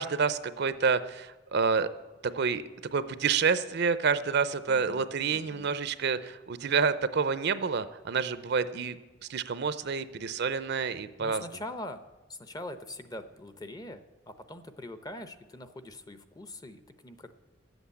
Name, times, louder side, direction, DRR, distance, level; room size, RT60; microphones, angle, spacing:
voice 1, 0.0-1.9 2.3-2.6 2.9-9.0 9.3-11.4, right 5 dB, 55° right, 13 dB, 0.6 m, -28 dB
voice 2, 4.7-5.7 11.2-12.0 12.3-17.3, left 1 dB, 20° left, 10 dB, 0.7 m, -43 dB
12.5 x 8.0 x 8.4 m, 1.1 s
head